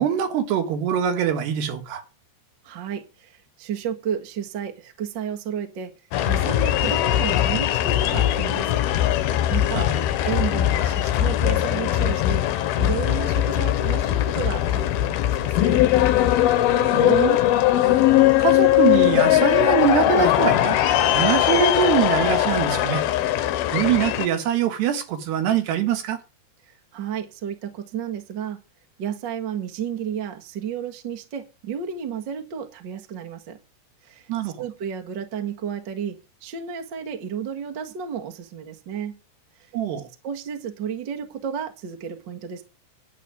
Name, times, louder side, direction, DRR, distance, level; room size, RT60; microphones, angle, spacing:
voice 1, 0.0-2.0 9.7-9.9 16.7-17.4 18.4-20.8 21.1-23.0 23.7-26.2 34.3-34.6 39.7-40.1, right 9 dB, 75° right, 3.8 m, -23 dB
voice 2, 2.6-5.9 6.2-8.8 9.5-9.9 10.2-12.4 12.8-15.8 26.7-28.6 29.0-33.6 34.0-39.2 40.2-42.6, right 8 dB, 50° right, 1.4 m, -32 dB
sound 1, 6.1-24.3, left 13 dB, 75° left, 2.7 m, -20 dB
11.5 x 5.9 x 9.1 m
omnidirectional pair, 4.8 m